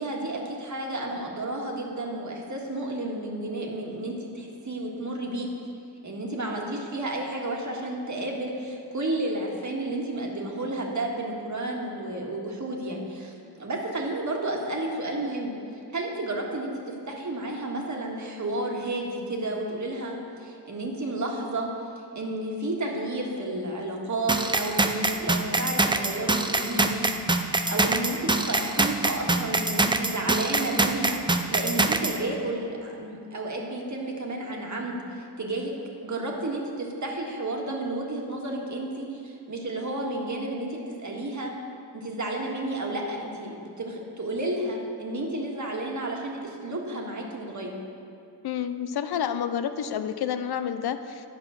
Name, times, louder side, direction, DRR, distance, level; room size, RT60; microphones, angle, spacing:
voice 1, 0.0-5.5 6.0-15.5 15.9-21.7 22.0-27.1 27.4-35.7 36.0-41.5 41.9-47.7, right 2 dB, 45° right, -1 dB, 1.7 m, -32 dB
sound 1, 24.3-32.2, right 2 dB, 10° right, 0.5 m, -24 dB
voice 2, 48.4-51.3, left 8 dB, 65° left, 11 dB, 0.6 m, -29 dB
10.5 x 5.3 x 6.4 m, 2.5 s
cardioid pair, 65°, 41 cm